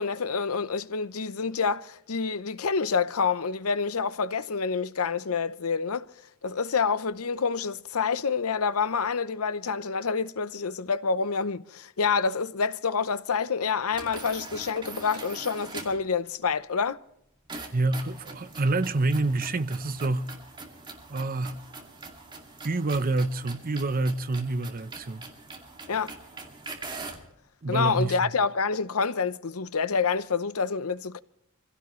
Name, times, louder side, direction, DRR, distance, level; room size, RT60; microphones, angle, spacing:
voice 1, 0.0-6.1 6.4-17.0 25.9-26.1 27.7-31.2, left 5 dB, 75° left, 0.8 m, -27 dB
sound 1, 13.9-16.1 17.5-27.3, right 3 dB, 20° right, 2.4 m, -43 dB
voice 2, 17.7-20.3 21.1-21.6 22.6-25.2 27.6-28.3, right 2 dB, 40° right, 0.8 m, -27 dB
26.5 x 16.5 x 3.2 m
head